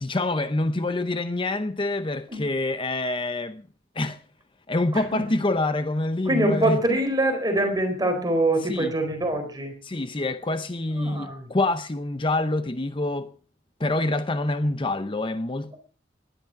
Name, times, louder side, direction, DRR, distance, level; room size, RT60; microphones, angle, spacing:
voice 1, 0.0-3.6 4.0-4.2 4.7-6.8 8.7-8.9 9.8-13.3 13.8-15.7, left 2 dB, 25° left, 0.7 m, -26 dB
voice 2, 4.9-5.2 6.2-9.7 10.9-11.5, right 1 dB, 20° right, 4.4 m, -24 dB
19.5 x 12.0 x 5.9 m
head